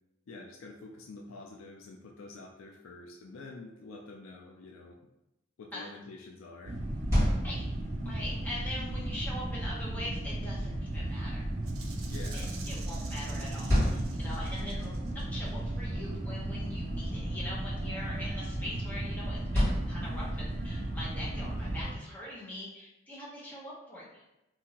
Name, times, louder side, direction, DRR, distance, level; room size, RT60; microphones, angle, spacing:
voice 1, 0.3-5.0 5.6-6.8 7.6-7.7 12.1-12.6, left 3 dB, 85° left, 0 dB, 0.4 m, -47 dB
sound 1, 6.6-21.9, right 1 dB, 35° right, 0.4 m, -35 dB
sound 2, 6.8-20.8, equal, 15° right, 1.5 m, -35 dB
voice 2, 8.0-11.5 12.3-24.2, left 1 dB, 10° left, -7 dB, 0.8 m, -42 dB
Rattle (instrument), 11.6-15.5, right 5 dB, 90° right, 0.5 m, -49 dB
2.8 x 2.5 x 2.8 m, 0.91 s
head